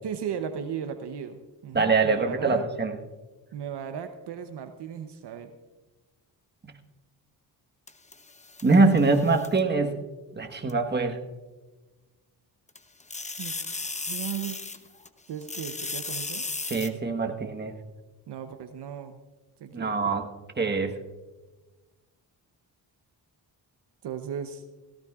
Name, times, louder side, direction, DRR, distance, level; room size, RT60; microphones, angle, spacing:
voice 1, 0.0-2.6 3.5-5.6 13.4-13.5 14.1-14.6 15.3-16.4 18.3-19.2 19.6-20.1 24.0-24.6, right 8 dB, 65° right, 8 dB, 0.9 m, -36 dB
voice 2, 1.7-3.0 6.6-6.7 8.6-10.0 10.3-11.2 16.7-17.7 19.7-20.3 20.6-20.9, right 3 dB, 25° right, 4 dB, 1.3 m, -23 dB
sound 1, 7.9-9.6 10.7-10.8 12.7-15.1 15.4-16.9, left 3 dB, 15° left, 0.8 m, -35 dB
17.5 x 14.5 x 2.4 m, 1.2 s
cardioid pair, 60°, 43 cm